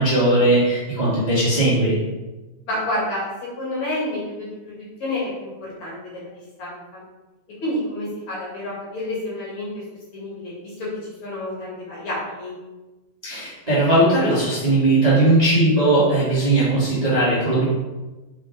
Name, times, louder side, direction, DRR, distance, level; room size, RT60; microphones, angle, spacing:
voice 1, 0.0-2.0 13.2-17.6, right 2 dB, 65° right, -9 dB, 0.4 m, -18 dB
voice 2, 2.7-3.3 3.6-6.3 6.6-7.0 7.6-9.8 10.1-12.5, left 1 dB, 50° left, -6 dB, 2.9 m, -29 dB
6.5 x 5.6 x 3.4 m, 1.1 s
omnidirectional pair, 4.8 m